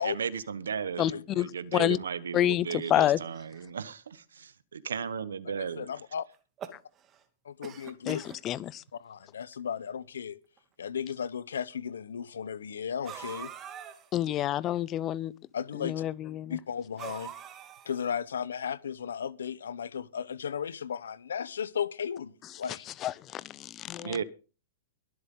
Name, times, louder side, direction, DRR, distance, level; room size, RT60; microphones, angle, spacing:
voice 1, 0.0-5.9 24.0-24.2, right 7 dB, 90° right, 1.2 m, -35 dB
voice 2, 1.0-2.0 2.3-3.2 8.0-8.8 14.1-15.3 15.7-16.6 23.0-24.2, left 12 dB, 30° left, 0.7 m, -28 dB
voice 3, 5.8-6.3 7.4-8.2 9.0-10.4 10.8-13.5 15.5-16.0 16.5-17.3 17.8-22.8, left 7 dB, 85° left, 0.9 m, -35 dB
sound 1, 6.3-7.2 7.6-8.4 9.2-9.3 9.5-9.6 10.6-10.7 13.0-14.1 17.0-18.1, right 9 dB, 30° right, 2.3 m, -43 dB
22.5 x 8.0 x 3.8 m
hypercardioid pair, 125°, 0 cm